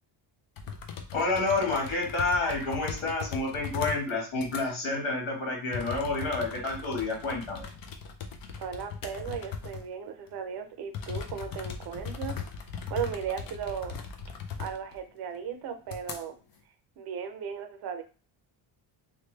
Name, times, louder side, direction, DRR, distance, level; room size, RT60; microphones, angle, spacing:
sound 1, 0.6-4.1 4.3-4.6 5.7-9.9 10.3-10.4 10.9-15.0 15.3-15.4 15.9-16.2, left 6 dB, 45° left, 0.5 m, -39 dB
voice 1, 1.1-7.7, left 3 dB, 70° left, -1 dB, 1.7 m, -29 dB
voice 2, 8.6-12.4 12.9-13.9 14.6-16.4 17.0-18.0, right 7 dB, 50° right, 6 dB, 0.6 m, -36 dB
3.2 x 2.2 x 3.2 m, 0.35 s
cardioid pair, 155°, 48 cm